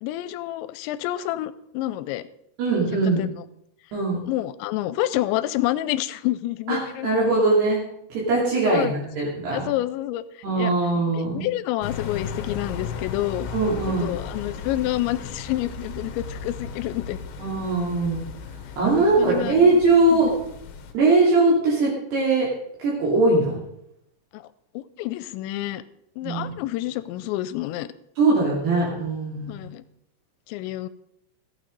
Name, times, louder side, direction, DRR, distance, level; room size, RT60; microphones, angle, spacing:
voice 1, 0.0-2.2 3.2-3.3 4.3-7.1 8.6-8.9 9.5-10.2 10.6-10.7 11.1-13.5 13.9-17.2 19.0-19.6 20.1-20.3 24.3-24.4 24.8-25.8 26.2-27.9 29.5-29.8 30.5-30.9, left 15 dB, 85° left, 15 dB, 2.9 m, -28 dB
voice 2, 2.6-3.2 3.9-4.2 6.7-7.8 8.1-9.7 10.4-11.4 13.5-14.1 17.4-18.2 18.8-20.3 20.9-22.5 22.8-23.6 26.2-26.5 28.2-29.6, right 3 dB, 65° right, -5 dB, 4.6 m, -21 dB
sound 1, 11.8-20.9, left 6 dB, 65° left, 2.6 m, -36 dB
14.5 x 8.8 x 5.2 m, 0.76 s
omnidirectional pair, 5.1 m